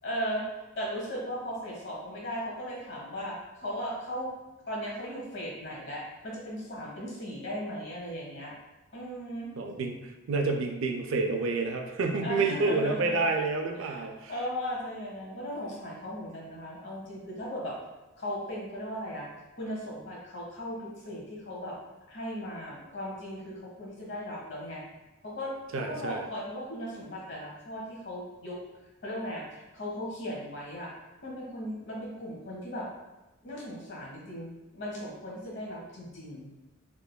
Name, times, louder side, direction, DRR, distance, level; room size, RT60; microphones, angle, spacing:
voice 1, 0.0-4.3 4.7-8.5 8.9-9.5 12.2-13.2 13.7-14.0 14.3-17.7 18.2-19.3 19.5-21.8 22.1-24.8 25.2-28.6 29.0-30.9 31.2-32.9 33.4-36.5, equal, 60° left, -3 dB, 1.0 m, -37 dB
voice 2, 9.6-14.3 25.7-26.3, right 3 dB, 75° right, 4 dB, 0.4 m, -29 dB
3.6 x 3.2 x 2.2 m, 1.0 s
head